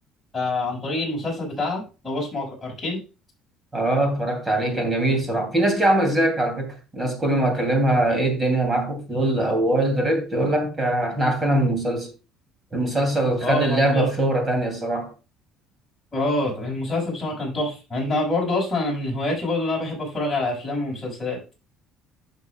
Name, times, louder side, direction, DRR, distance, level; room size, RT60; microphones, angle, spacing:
voice 1, 0.3-3.0 13.4-14.1 16.1-21.4, left 2 dB, 15° left, 5.4 m, -26 dB
voice 2, 3.7-12.1 12.7-15.1, right 1 dB, 20° right, 2.6 m, -22 dB
11.0 x 7.0 x 2.3 m
cardioid pair, 140°, 0 cm